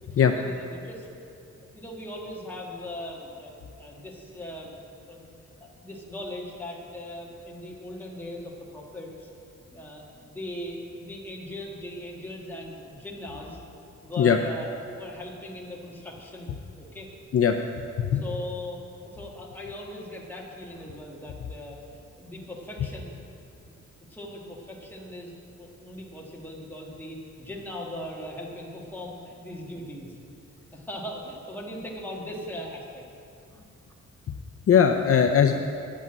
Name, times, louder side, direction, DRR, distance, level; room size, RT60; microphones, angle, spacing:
voice 1, 0.0-1.1 1.7-5.2 5.6-9.3 9.7-13.6 14.0-14.7 14.9-17.1 18.1-23.1 24.1-25.3 25.6-30.2 30.7-33.0 33.5-33.6, left 1 dB, 5° left, -3 dB, 1.5 m, -39 dB
voice 2, 34.7-35.5, left 7 dB, 50° left, 4 dB, 0.5 m, -19 dB
9.3 x 8.4 x 7.5 m, 2.6 s
wide cardioid pair, 155°, 30 cm